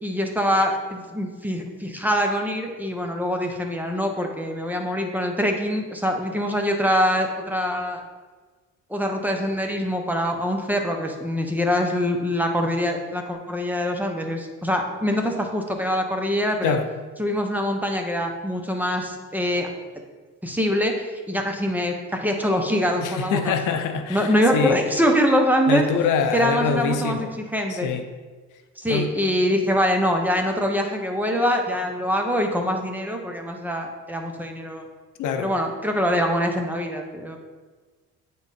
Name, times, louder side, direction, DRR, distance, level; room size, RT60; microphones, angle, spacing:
voice 1, 0.0-8.0 8.9-16.8 17.2-19.7 20.4-23.7 24.1-25.8 26.3-27.9 28.8-34.8 35.4-37.4, equal, 5° right, 2 dB, 0.9 m, -24 dB
voice 2, 23.0-24.8 25.7-27.3 27.7-28.0 28.9-29.1 35.2-35.5, left 5 dB, 80° left, 7 dB, 0.7 m, -24 dB
8.8 x 3.7 x 4.1 m, 1.4 s
cardioid pair, 90°, 30 cm